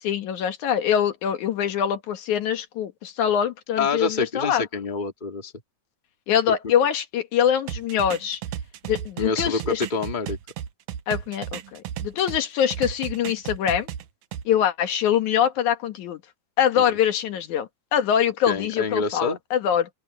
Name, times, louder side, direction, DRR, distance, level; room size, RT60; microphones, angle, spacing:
voice 1, 0.0-4.6 6.3-8.4 8.9-9.8 11.1-13.9 14.5-16.2 16.6-19.9, left 9 dB, 75° left, 2.8 m, -24 dB
voice 2, 3.8-5.5 6.5-6.6 9.2-10.4 16.8-16.9 18.5-19.4, left 4 dB, 15° left, 2.0 m, -27 dB
sound 1, 7.7-12.4 12.7-14.4, right 10 dB, 75° right, 2.3 m, -34 dB
open air
omnidirectional pair, 3.5 m